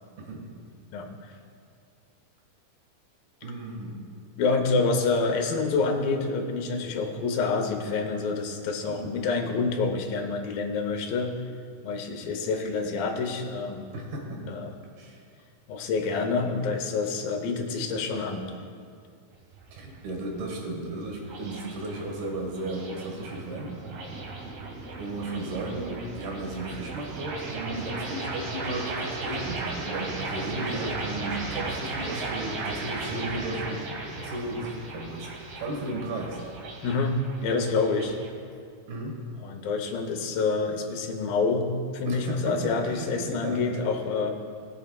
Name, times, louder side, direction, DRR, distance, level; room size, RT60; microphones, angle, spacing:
voice 1, 3.4-4.0 9.0-9.1 13.9-14.6 15.0-15.2 19.7-23.7 25.0-33.9 34.2-35.3 35.6-36.4 38.9-39.2 42.1-43.6, right 2 dB, 85° right, -1 dB, 3.6 m, -34 dB
voice 2, 4.4-11.3 11.8-13.8 14.4-14.8 15.7-18.5 36.8-38.2 39.4-41.7 41.9-44.3, left 4 dB, 75° left, 3 dB, 2.6 m, -27 dB
sound 1, 19.3-38.3, right 3 dB, 70° right, 2.8 m, -36 dB
20.5 x 8.2 x 2.3 m, 2.3 s
omnidirectional pair, 4.3 m